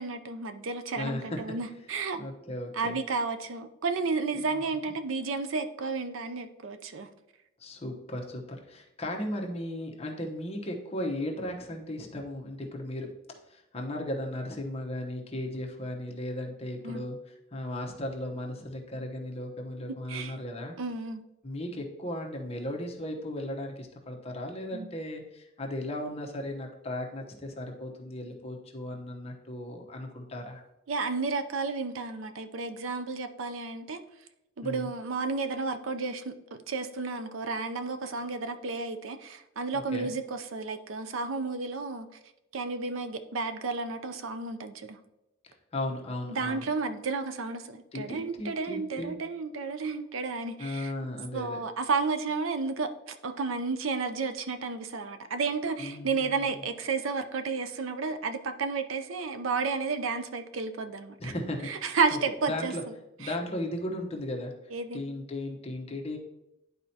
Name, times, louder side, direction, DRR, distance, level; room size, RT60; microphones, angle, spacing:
voice 1, 0.0-2.2 2.7-7.1 16.8-17.1 20.1-20.4 20.8-21.2 24.7-24.9 30.9-34.0 34.6-42.1 42.5-45.0 46.3-50.9 51.3-61.3 61.6-62.7 63.2-63.3 64.7-65.0, right 4 dB, 75° right, 9 dB, 0.6 m, -32 dB
voice 2, 1.0-1.4 2.2-3.0 4.3-4.6 7.6-13.1 13.5-17.2 17.5-20.8 21.4-30.6 34.6-34.9 39.7-40.1 45.7-46.7 47.9-49.2 50.6-51.6 55.8-56.6 61.2-61.7 62.5-62.8 63.2-64.5 64.9-66.2, left 1 dB, 30° left, 1 dB, 0.9 m, -36 dB
11.0 x 4.3 x 2.8 m, 0.90 s
head